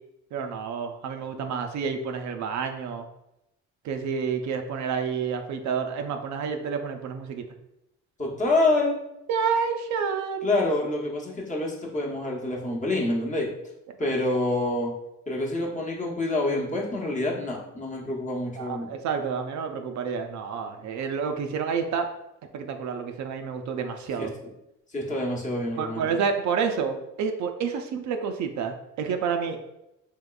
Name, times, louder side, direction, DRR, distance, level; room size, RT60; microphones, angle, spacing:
voice 1, 0.3-3.1 3.8-7.4 9.3-10.5 14.0-14.1 18.6-22.1 22.5-24.3 25.8-29.6, right 6 dB, 70° right, 5 dB, 0.4 m, -29 dB
voice 2, 8.2-9.0 10.4-13.5 14.0-14.9 15.3-18.9 24.2-24.3 24.9-26.0, left 2 dB, 25° left, -3 dB, 0.9 m, -27 dB
3.6 x 2.9 x 2.3 m, 0.88 s
cardioid pair, 90°, 30 cm